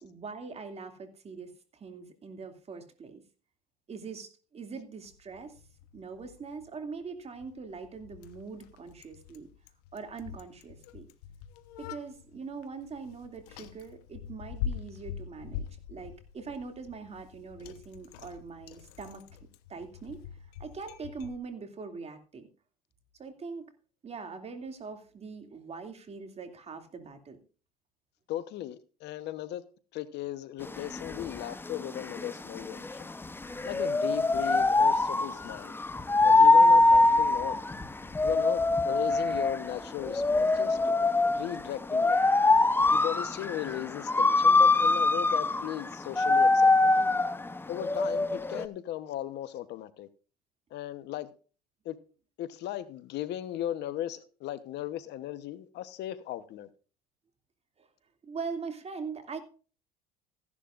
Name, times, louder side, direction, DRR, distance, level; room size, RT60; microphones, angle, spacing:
voice 1, 0.0-3.2 3.9-5.6 5.9-9.5 9.9-11.1 11.8-19.2 19.7-20.2 20.6-22.5 23.2-23.7 24.0-27.4 33.5-33.7 57.8-57.9 58.2-59.4, right 5 dB, 35° right, 2.6 m, -42 dB
Bicycle, 5.1-21.4, left 8 dB, 85° left, 1.1 m, -44 dB
voice 2, 28.3-29.6 29.9-33.1 33.6-35.7 36.2-37.6 38.2-40.9 41.2-42.2 42.9-47.1 47.7-50.1 50.7-51.3 51.8-52.0 52.4-56.7, left 13 dB, 60° left, 1.0 m, -37 dB
sound 1, 30.6-48.7, left 3 dB, 10° left, 0.8 m, -24 dB
15.5 x 11.0 x 2.5 m
supercardioid pair, 95°, 19 cm